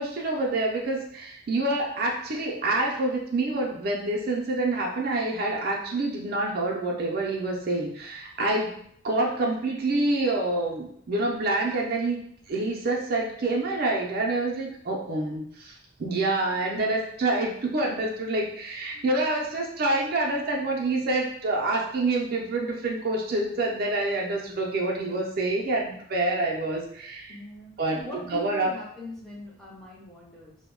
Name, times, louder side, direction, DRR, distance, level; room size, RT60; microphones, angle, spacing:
voice 1, 0.0-8.7 9.0-12.2 12.5-27.4 27.8-28.7, right 2 dB, 50° right, -1 dB, 0.4 m, -27 dB
voice 2, 27.3-30.6, left 1 dB, 5° left, -5 dB, 0.5 m, -42 dB
2.2 x 2.0 x 3.6 m, 0.67 s
head